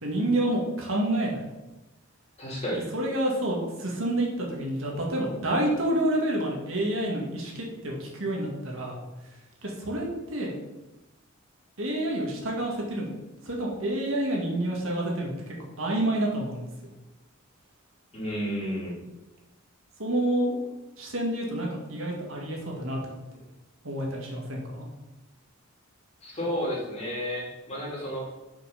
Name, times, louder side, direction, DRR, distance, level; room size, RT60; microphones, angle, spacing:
voice 1, 0.0-1.4 2.9-9.0 9.6-10.5 11.8-13.1 13.4-16.7 20.0-20.6 21.0-23.0 23.8-24.9, right 1 dB, 70° right, -2 dB, 2.3 m, -28 dB
voice 2, 2.4-2.9 18.1-19.0 26.2-28.2, equal, 30° left, -5 dB, 3.3 m, -31 dB
6.5 x 5.7 x 6.6 m, 1.0 s
head